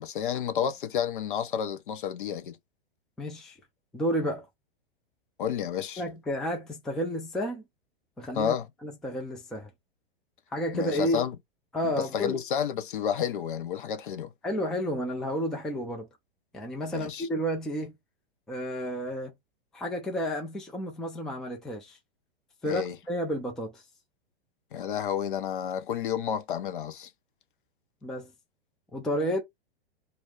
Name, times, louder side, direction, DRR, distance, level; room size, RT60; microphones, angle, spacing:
voice 1, 0.0-2.6 5.4-6.0 8.4-8.7 10.7-11.3 11.8-14.3 16.9-17.3 22.6-23.0 24.7-27.1, left 8 dB, 55° left, 0.6 m, -30 dB
voice 2, 3.2-3.6 3.9-4.5 6.0-7.6 8.2-8.5 8.8-9.7 10.5-11.2 11.7-12.4 14.4-16.1 16.5-17.9 18.5-19.3 19.7-22.0 22.6-23.8 28.0-28.3 28.9-29.4, equal, ahead, 0.4 m, -31 dB
2.2 x 2.0 x 3.5 m
figure-of-eight pair, 105°, 30 cm